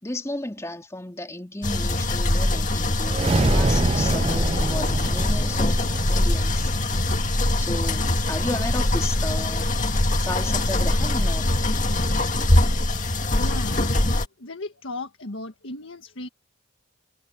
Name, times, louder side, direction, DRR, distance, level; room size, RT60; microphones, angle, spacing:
voice 1, 0.0-6.7 7.6-9.7 10.2-11.5, left 1 dB, 15° left, 2.8 m, -33 dB
sound 1, 1.6-14.3, left 1 dB, 40° left, 2.0 m, -22 dB
sound 2, 3.0-7.4, right 2 dB, 30° right, 0.6 m, -26 dB
voice 2, 13.4-13.8 14.4-16.3, left 2 dB, 85° left, 1.6 m, -35 dB
head